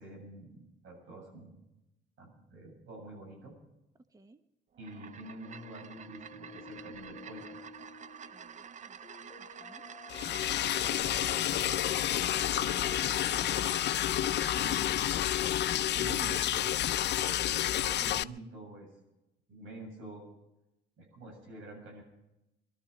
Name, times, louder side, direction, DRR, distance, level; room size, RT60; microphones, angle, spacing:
voice 1, 0.0-1.6 2.2-3.5 4.8-7.6 10.2-13.9 14.5-15.3 15.6-16.7 17.2-18.9 19.5-20.3 21.0-22.0, right 2 dB, 80° right, 0 dB, 7.7 m, -48 dB
voice 2, 4.1-4.4 8.3-9.8 15.8-16.0, right 2 dB, 15° right, 9 dB, 0.9 m, -61 dB
sound 1, 4.7-14.9, right 7 dB, 35° right, 0.5 m, -48 dB
sound 2, 5.4-14.8, left 4 dB, 30° left, 1.3 m, -53 dB
Liquid, 10.1-18.2, left 12 dB, 60° left, 0.5 m, -30 dB
22.0 x 12.5 x 5.1 m, 0.90 s
cardioid pair, 90°, 20 cm